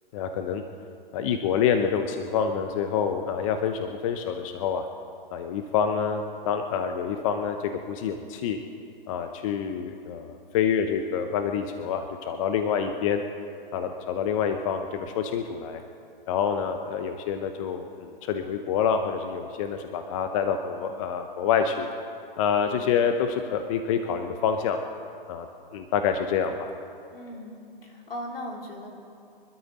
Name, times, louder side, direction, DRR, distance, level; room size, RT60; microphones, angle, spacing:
voice 1, 0.1-0.6 1.1-4.9 5.3-7.6 7.9-8.6 9.1-13.2 13.7-15.8 16.3-21.9 22.4-24.8 25.3-25.5 25.7-26.7, left 7 dB, 35° left, 6 dB, 0.8 m, -27 dB
voice 2, 27.1-28.9, left 1 dB, 75° left, 0 dB, 3.8 m, -38 dB
25.0 x 12.5 x 4.2 m, 2.5 s
hypercardioid pair, 140°, 29 cm